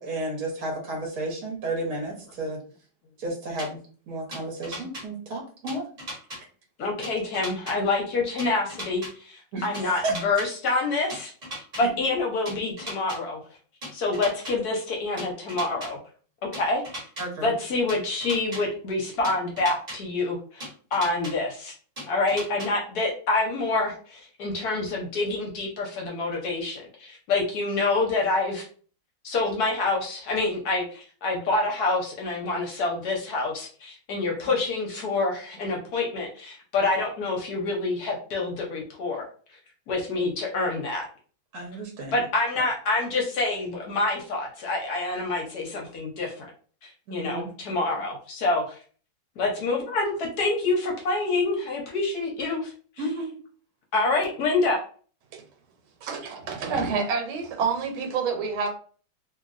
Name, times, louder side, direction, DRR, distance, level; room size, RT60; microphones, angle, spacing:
voice 1, 0.0-2.6 3.2-3.8 4.1-5.8 9.5-10.1 11.8-11.9 17.2-17.5 41.5-42.1 47.1-47.5 53.0-53.4, right 2 dB, 60° right, -1 dB, 1.1 m, -32 dB
sound 1, 3.6-3.7 4.3-5.0 5.7-6.4 7.0-7.7 8.4-9.1 9.7-10.5 11.1-11.8 12.5-13.2 13.8-14.5 15.2-15.9 16.5-17.2 17.9-18.6 19.2-20.0 20.6-21.3 22.0-22.7, equal, 30° right, 0.9 m, -36 dB
voice 2, 6.8-11.3 11.8-13.4 13.9-16.0 16.5-16.8 17.4-21.7 22.0-28.6 29.2-39.2 39.9-41.1 42.1-46.5 46.8-48.8 49.4-52.7 53.9-54.8, left 3 dB, 65° left, 0 dB, 1.0 m, -27 dB
voice 3, 56.0-58.7, right 5 dB, 85° right, 3 dB, 1.6 m, -28 dB
2.9 x 2.8 x 2.4 m, 0.42 s
omnidirectional pair, 2.2 m